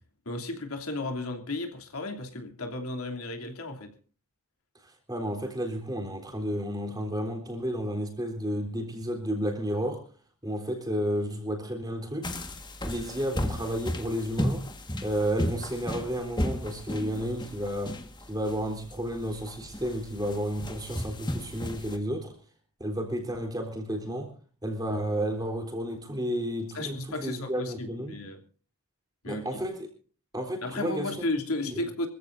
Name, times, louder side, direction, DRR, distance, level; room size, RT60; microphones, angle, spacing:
voice 1, 0.2-3.9 26.7-28.4 29.2-29.6 30.6-32.1, left 2 dB, 75° left, 3.0 m, -34 dB
voice 2, 4.8-10.1 10.4-12.3 12.8-14.7 15.0-22.4 22.8-24.3 24.6-28.2 29.3-29.9 30.3-31.3 31.6-31.8, equal, 15° right, 3.7 m, -32 dB
sound 1, 12.2-22.0, left 1 dB, 20° left, 1.5 m, -34 dB
25.5 x 15.0 x 2.6 m
head